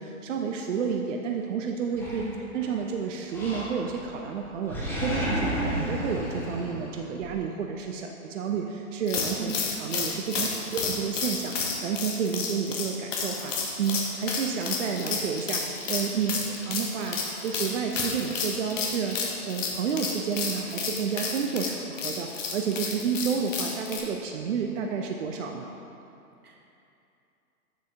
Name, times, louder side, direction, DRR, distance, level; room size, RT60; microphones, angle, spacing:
voice 1, 0.0-2.3 2.5-4.8 5.0-25.8, right 6 dB, 55° right, 2 dB, 0.5 m, -30 dB
Animal, 2.0-2.8 3.3-4.1 4.4-7.3, equal, 5° left, 0.8 m, -32 dB
voice 2, 2.2-2.4 9.4-9.5 10.6-10.7 16.2-16.4 26.4-26.6, right 6 dB, 85° right, 0 dB, 1.1 m, -38 dB
sound 1, 9.1-24.0, left 5 dB, 55° left, 1.0 m, -31 dB
7.0 x 6.0 x 2.7 m, 2.7 s
figure-of-eight pair, 120°, 44 cm